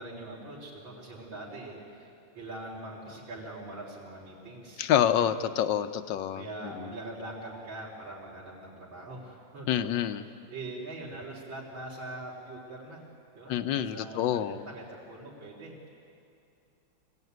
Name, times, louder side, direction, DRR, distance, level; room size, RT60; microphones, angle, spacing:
voice 1, 0.0-2.1 2.3-5.2 6.3-13.0 13.3-15.7, right 2 dB, 70° right, -8 dB, 4.5 m, -43 dB
voice 2, 4.8-6.7 9.7-10.2 13.5-14.6, left 10 dB, 70° left, 11 dB, 1.4 m, -27 dB
25.5 x 17.0 x 9.4 m, 2.5 s
omnidirectional pair, 2.2 m